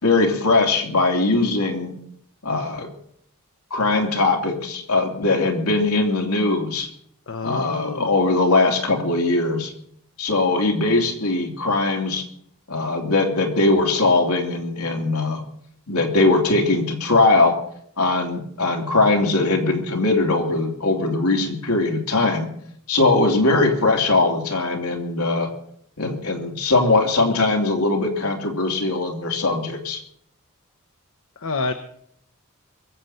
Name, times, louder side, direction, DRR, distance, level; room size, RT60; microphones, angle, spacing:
voice 1, 0.0-2.0 2.4-2.9 3.7-6.9 7.4-9.7 10.2-12.2 12.7-15.4 15.9-17.6 18.0-22.5 22.9-25.5 26.0-30.0, left 2 dB, 85° left, 2 dB, 2.8 m, -20 dB
voice 2, 7.3-8.1 31.4-31.7, left 3 dB, 65° left, 7 dB, 0.9 m, -28 dB
23.0 x 7.9 x 5.7 m, 0.67 s
head